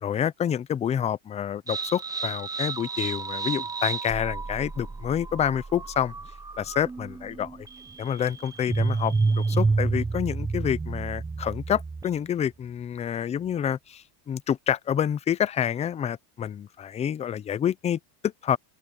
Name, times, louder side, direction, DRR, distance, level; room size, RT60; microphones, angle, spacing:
voice 1, 0.0-6.1 6.6-7.7 8.0-18.6, left 9 dB, 15° left, 0.4 m, -28 dB
sound 1, 1.7-12.3, right 4 dB, 5° right, 0.8 m, -30 dB
supercardioid pair, 130°, 49 cm